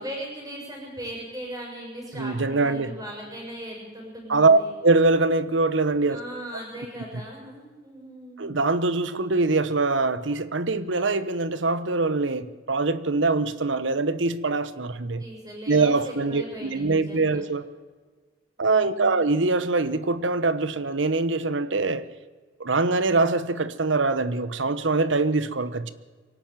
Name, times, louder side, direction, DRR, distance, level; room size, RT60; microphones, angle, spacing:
voice 1, 0.0-4.7 6.1-8.5 15.2-17.4 18.6-19.3, equal, 20° right, 6.9 m, -38 dB
voice 2, 2.1-3.0 4.3-6.2 8.4-15.2 15.7-17.6 18.6-22.1 22.6-25.9, right 3 dB, 80° right, 1.1 m, -23 dB
23.5 x 12.5 x 9.1 m
head